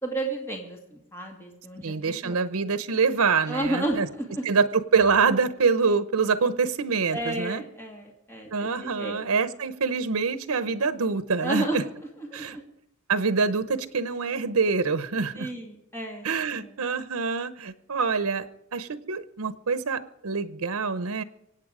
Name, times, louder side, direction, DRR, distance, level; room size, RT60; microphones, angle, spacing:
voice 1, 0.0-2.4 3.5-4.5 7.1-9.3 11.4-11.9 12.2-12.6 15.3-16.8, right 2 dB, 10° left, 0 dB, 2.2 m, -32 dB
voice 2, 1.8-4.1 4.5-7.6 8.5-11.8 12.3-12.6 13.1-15.5 16.2-18.5 18.7-21.2, right 5 dB, 80° right, 13 dB, 0.8 m, -25 dB
25.0 x 8.9 x 5.0 m, 0.79 s
head